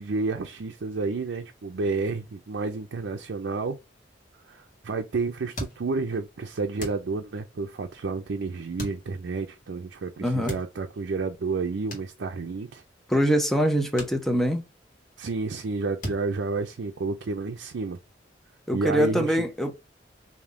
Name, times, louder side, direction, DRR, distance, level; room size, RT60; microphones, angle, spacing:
voice 1, 0.0-3.8 4.5-12.8 15.2-18.0 18.7-19.5, right 4 dB, 80° right, 0.5 m, -30 dB
sound 1, 5.5-6.3 6.8-7.6 8.8-9.4 10.3-11.1 11.9-12.7 13.0-13.2 13.9-14.9 15.2-15.6 16.0-17.2, equal, 50° left, 1.5 m, -39 dB
voice 2, 10.2-10.6 13.1-14.6 18.7-19.7, equal, ahead, 0.7 m, -23 dB
3.5 x 2.7 x 3.6 m
head